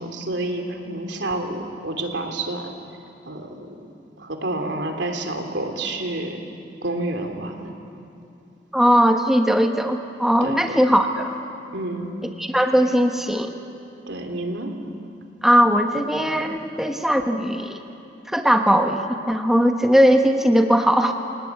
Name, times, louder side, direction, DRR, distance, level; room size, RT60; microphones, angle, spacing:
voice 1, 0.0-2.7 3.3-3.9 4.2-6.4 6.8-7.7 10.4-10.8 11.7-12.1 14.1-14.7, right 2 dB, 80° right, 4 dB, 3.0 m, -29 dB
voice 2, 8.7-11.3 12.4-13.5 15.4-17.8 18.3-19.0 19.3-21.1, equal, ahead, 4 dB, 1.2 m, -19 dB
29.0 x 18.0 x 9.4 m, 2.7 s
head